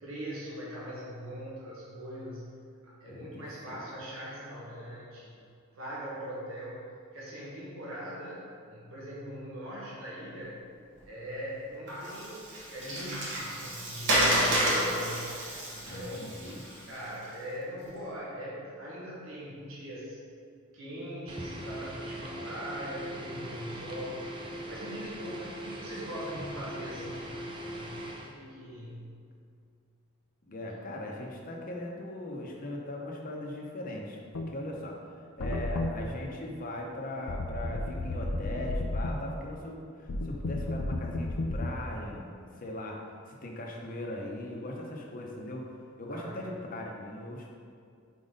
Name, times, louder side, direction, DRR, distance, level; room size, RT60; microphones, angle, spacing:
voice 1, 0.0-2.5 2.8-5.4 5.7-8.4 8.7-10.6 11.0-15.3 15.7-16.4 16.8-20.2 20.7-24.2 24.7-29.1 46.1-46.6, equal, 80° right, -7 dB, 1.4 m, -41 dB
voice 2, 3.1-3.8 15.8-16.6 30.5-35.0 35.4-43.0 43.3-45.7 46.0-47.5, left 1 dB, 40° left, 0 dB, 0.8 m, -39 dB
Water, 11.9-17.2, right 1 dB, 60° right, 1.3 m, -30 dB
sound 1, 21.3-28.4, right 1 dB, 25° right, 0.6 m, -40 dB
sound 2, 34.3-34.5 35.4-35.9 37.3-39.1 40.1-41.7, left 2 dB, 75° left, 0.5 m, -32 dB
4.7 x 4.0 x 5.1 m, 2.3 s
head